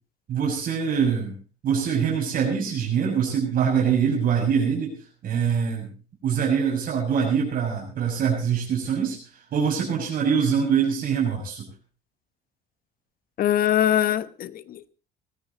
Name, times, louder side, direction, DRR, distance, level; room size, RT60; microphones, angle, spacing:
voice 1, 0.3-1.4 1.6-4.9 5.2-5.9 6.2-9.2 9.5-11.7, right 7 dB, 55° right, 6.5 m, -24 dB
voice 2, 13.4-14.9, left 11 dB, 60° left, 1.1 m, -23 dB
19.0 x 14.5 x 4.1 m
cardioid pair, 110°, 17 cm